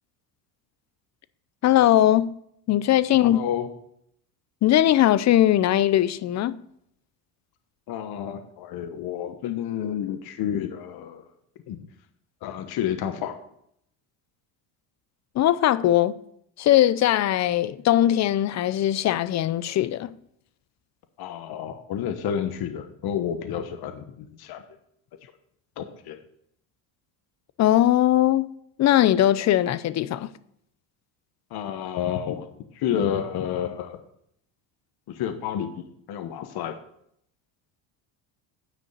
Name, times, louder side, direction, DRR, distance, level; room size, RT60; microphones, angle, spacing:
voice 1, 1.6-2.3 2.7-3.4 4.6-6.6 15.4-16.2 16.6-20.1 27.6-28.5 28.8-30.3, left 13 dB, 40° left, 0.5 m, -20 dB
voice 2, 3.2-3.7 7.9-11.2 11.7-11.9 12.4-13.4 21.2-24.6 25.8-26.2 31.5-32.5 32.7-34.0 35.1-36.8, left 9 dB, 55° left, 1.1 m, -30 dB
9.9 x 5.1 x 6.7 m
cardioid pair, 110°, 45 cm